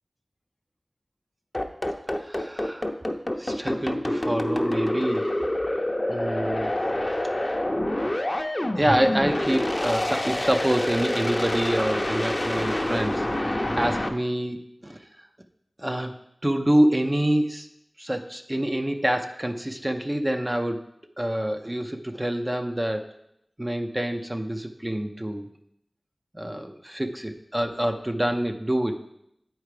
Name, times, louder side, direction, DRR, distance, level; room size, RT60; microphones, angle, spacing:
sound 1, 1.5-14.1, left 1 dB, 25° left, 0.7 m, -26 dB
voice 1, 2.2-2.9 3.4-5.3 6.1-6.7 8.8-14.6 14.8-15.0 15.8-16.1 16.4-17.7 18.0-20.8 21.2-23.0 23.6-25.5 26.3-29.0, right 1 dB, 20° right, 5 dB, 0.6 m, -26 dB
8.5 x 4.6 x 5.0 m, 0.78 s
wide cardioid pair, 60°, 0 cm